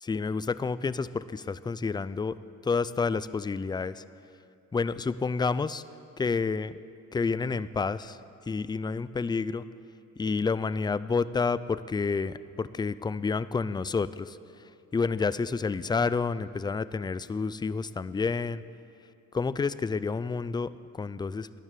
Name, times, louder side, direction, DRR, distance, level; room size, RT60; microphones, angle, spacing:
voice 1, 0.0-2.4 2.6-4.0 4.7-5.8 6.2-6.8 7.1-8.2 8.5-9.6 10.2-14.4 14.9-18.6 19.3-21.6, left 4 dB, 15° left, 16 dB, 0.4 m, -29 dB
12.5 x 11.0 x 8.3 m, 2.5 s
cardioid pair, 90°, 30 cm